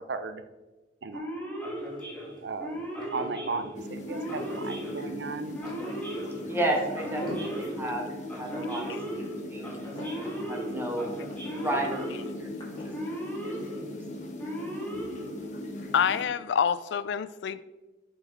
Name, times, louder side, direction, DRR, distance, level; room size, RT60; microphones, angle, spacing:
voice 1, 0.1-0.4 1.0-1.3 2.4-2.8 3.1-5.6, right 4 dB, 70° right, 10 dB, 0.5 m, -35 dB
Male speech man speaking / Siren, 1.1-15.9, equal, 10° left, 1.7 m, -37 dB
sound 1, 1.6-14.5, left 1 dB, 25° left, 2.1 m, -48 dB
sound 2, 3.7-16.2, left 1 dB, 45° left, 1.2 m, -40 dB
voice 2, 6.5-8.1 8.3-11.2 11.6-12.7 13.4-14.0, right 1 dB, 15° right, 0 dB, 1.4 m, -33 dB
voice 3, 15.9-17.6, left 7 dB, 75° left, 15 dB, 0.3 m, -27 dB
7.2 x 4.7 x 4.9 m, 1.1 s
head